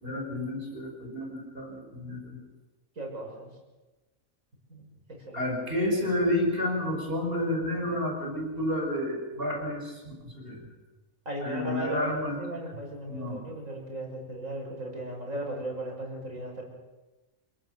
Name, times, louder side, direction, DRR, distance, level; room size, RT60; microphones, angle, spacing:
voice 1, 0.0-2.4 5.3-10.7 11.4-12.6 13.1-13.4, left 1 dB, 40° right, 1 dB, 6.2 m, -30 dB
voice 2, 3.0-3.5 4.7-4.8 5.1-5.5 11.2-16.6, right 1 dB, 70° right, 1 dB, 6.3 m, -37 dB
28.0 x 19.0 x 6.9 m, 1.1 s
omnidirectional pair, 1.4 m